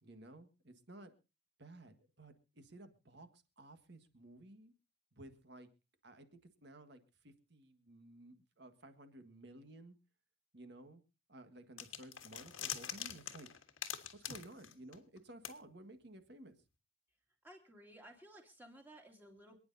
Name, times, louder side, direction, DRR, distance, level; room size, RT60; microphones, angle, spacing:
voice 1, 0.0-1.1 1.6-4.7 5.1-5.7 6.0-10.0 10.5-11.0 11.3-13.5 14.1-16.6, right 1 dB, 55° right, 9 dB, 1.7 m, -55 dB
sound 1, 11.8-15.2 15.4-15.5, left 10 dB, 80° left, 1.5 m, -44 dB
voice 2, 17.4-19.6, right 1 dB, 10° right, 1 dB, 2.5 m, -57 dB
27.5 x 9.8 x 2.7 m, 0.29 s
head